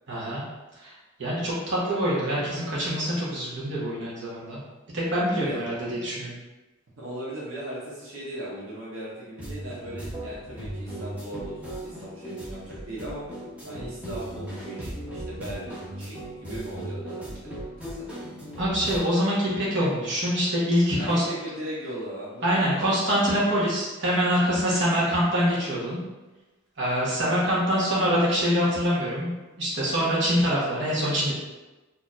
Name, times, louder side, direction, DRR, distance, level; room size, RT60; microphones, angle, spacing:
voice 1, 0.1-0.4 0.8-0.9 1.2-4.6 4.9-6.3 18.6-21.2 22.4-26.0 26.8-31.3, equal, 60° right, -7 dB, 1.1 m, -25 dB
voice 2, 5.3-5.6 7.0-13.2 13.6-18.2 21.0-22.9 27.0-27.9, right 1 dB, 85° right, -7 dB, 1.0 m, -38 dB
sound 1, 9.4-19.0, right 1 dB, 5° right, 0.8 m, -37 dB
4.3 x 2.8 x 2.5 m, 1.1 s
head